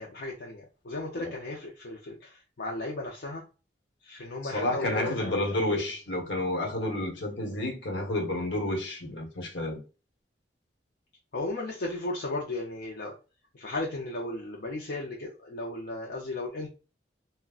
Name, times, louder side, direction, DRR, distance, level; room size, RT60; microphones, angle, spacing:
voice 1, 0.0-3.4 4.0-5.9 11.3-13.1 13.5-16.7, left 2 dB, 60° left, 0.5 m, -35 dB
voice 2, 4.4-9.8, left 1 dB, 80° left, 1.0 m, -30 dB
3.6 x 2.1 x 2.3 m
head